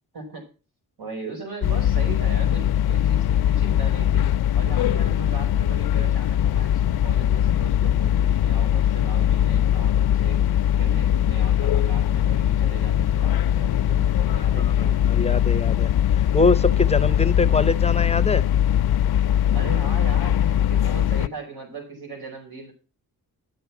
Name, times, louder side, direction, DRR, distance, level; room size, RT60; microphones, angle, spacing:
voice 1, 1.0-10.4 10.8-15.0 19.5-22.7, right 3 dB, 90° right, 5.3 m, -38 dB
sound 1, 1.6-21.3, left 11 dB, 80° left, 0.5 m, -21 dB
voice 2, 14.6-18.4, left 3 dB, 20° left, 0.5 m, -24 dB
12.5 x 8.0 x 5.8 m
wide cardioid pair, 175°, 36 cm